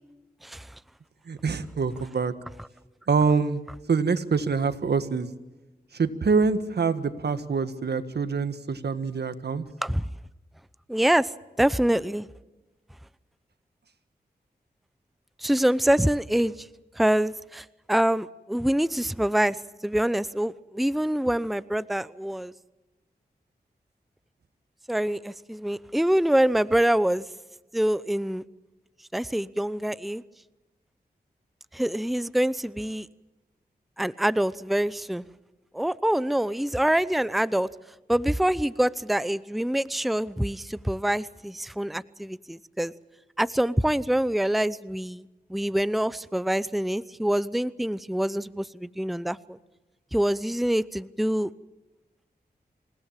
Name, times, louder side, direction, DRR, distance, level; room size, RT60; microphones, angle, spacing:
voice 1, 0.4-0.7 9.8-10.0 10.9-11.3 11.6-12.3 15.4-16.7 17.0-19.6 19.8-22.5 24.9-27.3 27.7-28.4 29.1-30.2 31.7-33.1 34.0-35.2 35.7-37.7 38.1-42.9 43.4-49.6 50.1-51.5, right 1 dB, ahead, 17 dB, 0.7 m, -25 dB
voice 2, 1.3-2.3 3.1-3.6 3.9-5.3 5.9-9.6, right 5 dB, 75° right, 11 dB, 1.6 m, -25 dB
27.5 x 17.0 x 7.5 m, 1.1 s
cardioid pair, 50°, 17 cm